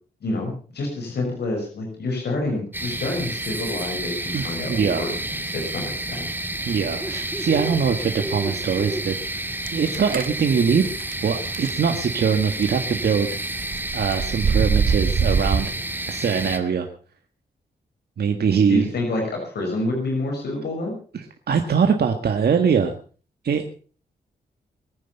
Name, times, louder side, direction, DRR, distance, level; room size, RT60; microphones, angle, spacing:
voice 1, 0.2-6.3 18.7-20.9, left 2 dB, 80° left, 1 dB, 5.8 m, -28 dB
sound 1, 2.7-16.6, right 1 dB, 10° right, 2.2 m, -30 dB
voice 2, 4.3-5.0 6.7-9.2 9.7-13.3 13.9-15.7 16.1-16.9 18.2-18.9 21.1-22.9 23.4-23.6, right 6 dB, 70° right, 5 dB, 1.7 m, -22 dB
sound 2, 9.7-10.3 11.0-11.1 11.5-11.7 12.3-12.6 13.5-15.6, right 5 dB, 55° right, 1.3 m, -22 dB
22.5 x 9.5 x 5.7 m, 0.41 s
cardioid pair, 85°, 17 cm